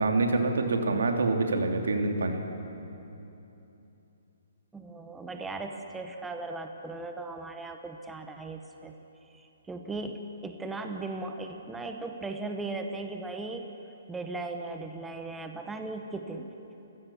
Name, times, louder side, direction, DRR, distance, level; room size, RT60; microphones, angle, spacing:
voice 1, 0.0-2.4, right 3 dB, 85° right, 4 dB, 2.8 m, -26 dB
voice 2, 4.7-9.0 9.4-13.7 14.1-16.5, right 3 dB, 5° right, 5 dB, 1.0 m, -37 dB
29.5 x 16.5 x 7.2 m, 3.0 s
hypercardioid pair, 160°, 0 cm